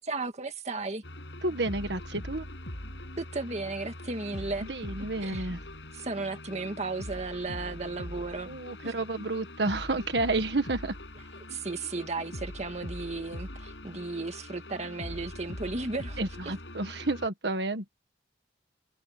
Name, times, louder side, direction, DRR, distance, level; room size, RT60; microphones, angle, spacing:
voice 1, 0.0-1.0 3.2-4.7 5.2-5.5 5.9-8.5 8.8-8.9 11.5-16.2 16.5-16.6, right 3 dB, 40° right, 1.9 m, -35 dB
sound 1, 1.0-17.3, left 1 dB, 85° left, 6.4 m, -42 dB
voice 2, 1.4-2.4 4.6-5.6 8.4-10.9 16.2-17.9, right 2 dB, 70° right, 1.6 m, -30 dB
head